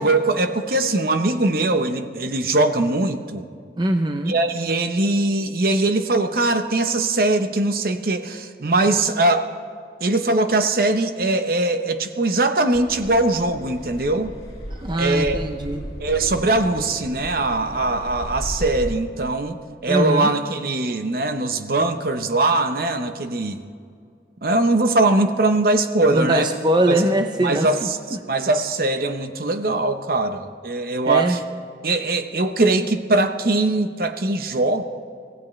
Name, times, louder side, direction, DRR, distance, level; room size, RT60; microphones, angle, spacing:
voice 1, 0.0-3.4 4.3-9.5 10.0-14.3 15.0-15.4 16.0-19.6 19.8-23.6 24.4-26.5 26.9-27.0 27.4-28.0 28.3-31.4 31.8-34.8, right 2 dB, 55° right, 8 dB, 0.9 m, -21 dB
voice 2, 3.8-4.3 14.8-15.8 19.9-20.3 26.1-27.9 31.1-31.4, right 1 dB, 25° right, 5 dB, 0.6 m, -21 dB
Car passing by / Accelerating revving vroom, 12.7-18.9, equal, 35° left, 3.2 m, -35 dB
25.0 x 16.5 x 3.2 m, 2.3 s
head